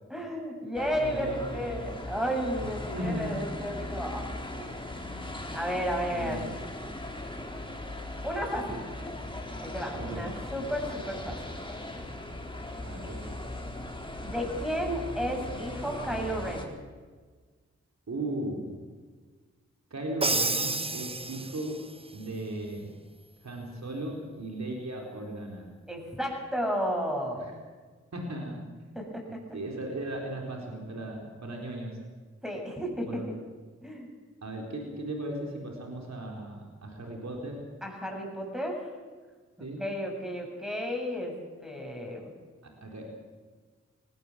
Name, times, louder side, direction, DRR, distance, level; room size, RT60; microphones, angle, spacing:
voice 1, 0.1-1.3 1.5-4.7 5.5-6.4 8.2-8.8 9.6-11.6 14.2-16.7 25.9-27.5 28.9-29.4 32.4-33.2 33.8-34.1 37.8-38.9 39.8-41.3 41.6-42.2, equal, ahead, 1 dB, 7.8 m, -33 dB
sound 1, 0.7-16.7, left 1 dB, 15° left, 3.7 m, -38 dB
voice 2, 1.0-2.0 2.9-3.4 6.1-6.5 9.9-10.3 12.8-13.4 18.1-18.7 19.9-21.8 22.1-22.9 23.4-25.7 28.1-28.6 29.5-32.0 33.1-33.3 34.4-37.6 39.6-39.8 42.6-43.1, right 1 dB, 65° right, 0 dB, 4.3 m, -36 dB
Crash cymbal, 20.2-21.9, right 3 dB, 20° right, 0.7 m, -29 dB
18.5 x 18.5 x 7.6 m, 1.4 s
cardioid pair, 40°, 29 cm